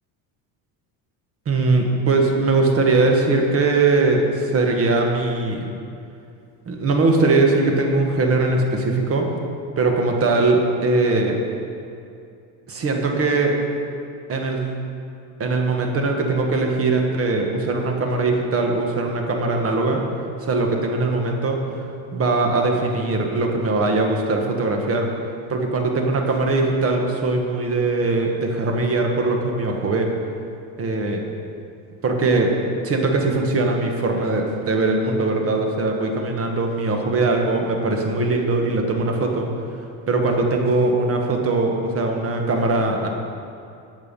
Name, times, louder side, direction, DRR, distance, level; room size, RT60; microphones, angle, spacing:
voice 1, 1.4-5.7 6.7-9.3 9.8-11.4 12.7-13.5 14.3-14.7 15.4-20.0 20.4-21.6 22.1-25.1 25.5-30.1 30.8-31.2 32.0-32.6 32.8-39.5 40.1-43.1, right 3 dB, 35° right, 2 dB, 1.5 m, -21 dB
11.5 x 8.1 x 5.3 m, 2.5 s
cardioid pair, 130°, 39 cm